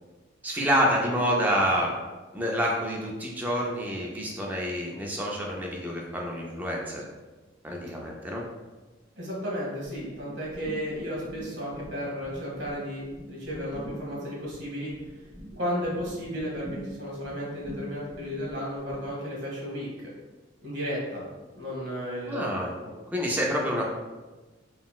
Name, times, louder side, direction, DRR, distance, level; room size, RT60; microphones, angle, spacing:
voice 1, 0.4-1.9 2.3-7.0 7.6-8.4 22.3-22.7 23.1-23.9, equal, 10° right, -2 dB, 0.4 m, -27 dB
voice 2, 9.2-14.9 15.6-19.9 20.6-21.2 21.5-22.5, equal, 75° right, -5 dB, 1.2 m, -33 dB
sound 1, 10.0-11.9 12.2-19.1, equal, 25° right, 1.4 m, -43 dB
3.9 x 2.0 x 2.3 m, 1.2 s
head